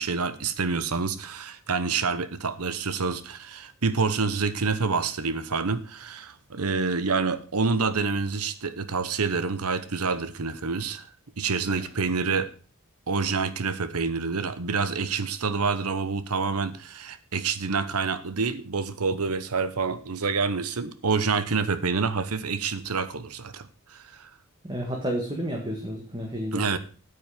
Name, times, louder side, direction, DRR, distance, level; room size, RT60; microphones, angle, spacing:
voice 1, 0.0-11.1 11.4-12.5 13.1-24.3 26.5-26.8, right 4 dB, 90° right, 1.0 m, -27 dB
voice 2, 24.6-26.6, equal, 20° right, 1.7 m, -31 dB
8.9 x 8.7 x 5.0 m
head